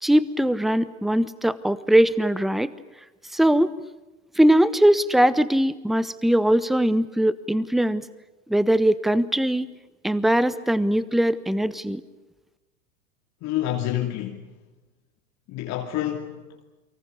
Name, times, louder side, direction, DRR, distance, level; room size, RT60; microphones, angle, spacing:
voice 1, 0.0-2.7 3.3-3.7 4.4-8.0 8.5-9.7 10.0-12.0, right 1 dB, ahead, 1.1 m, -21 dB
voice 2, 13.4-14.4 15.5-16.6, left 12 dB, 40° left, 2.7 m, -28 dB
30.0 x 24.0 x 6.8 m
hypercardioid pair, 95°, 41 cm